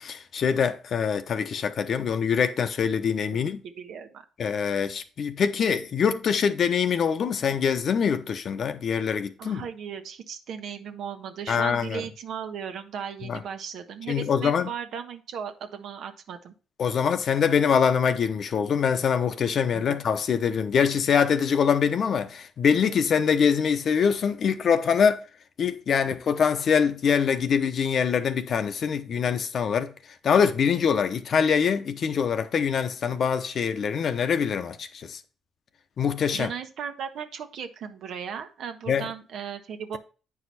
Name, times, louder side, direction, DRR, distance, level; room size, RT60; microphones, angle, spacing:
voice 1, 0.0-3.6 4.4-9.6 11.5-12.0 13.2-13.4 14.1-14.7 16.8-25.2 25.6-29.9 30.2-35.2 36.0-36.5 38.9-39.1, left 7 dB, 60° left, 0.9 m, -24 dB
voice 2, 3.6-4.2 9.4-16.5 19.7-20.0 36.3-40.0, right 7 dB, 75° right, 1.1 m, -36 dB
8.7 x 4.9 x 4.1 m
cardioid pair, 90°, 0 cm